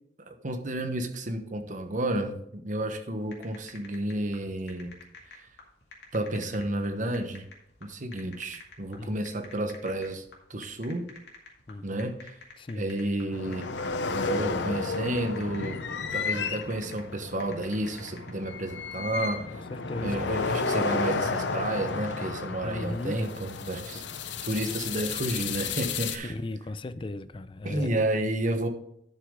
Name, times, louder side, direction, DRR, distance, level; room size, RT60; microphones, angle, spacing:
voice 1, 0.2-4.9 5.3-5.5 6.1-7.5 7.8-10.2 10.5-11.1 11.8-12.3 12.7-13.7 14.1-15.8 16.1-19.4 20.0-24.0 24.4-26.3 27.6-28.7, right 1 dB, 45° right, 1.1 m, -31 dB
sound 1, 3.2-18.3, left 4 dB, 70° left, 2.2 m, -50 dB
voice 2, 11.7-12.1 12.6-12.9 19.5-20.3 22.6-23.2 26.2-28.0, left 2 dB, 30° left, 0.4 m, -36 dB
sound 2, 13.3-26.2, left 4 dB, 90° left, 0.7 m, -32 dB
11.0 x 6.3 x 3.7 m
head